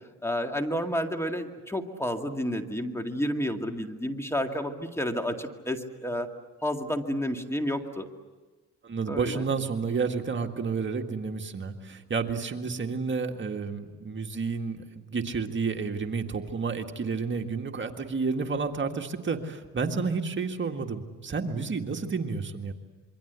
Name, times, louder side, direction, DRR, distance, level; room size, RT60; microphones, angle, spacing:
voice 1, 0.2-6.3 6.6-8.1 9.1-9.4, equal, 10° left, 5 dB, 2.1 m, -30 dB
voice 2, 8.8-22.7, right 4 dB, 40° right, 4 dB, 1.9 m, -30 dB
27.0 x 23.5 x 8.2 m, 1.3 s
cardioid pair, 90°, 30 cm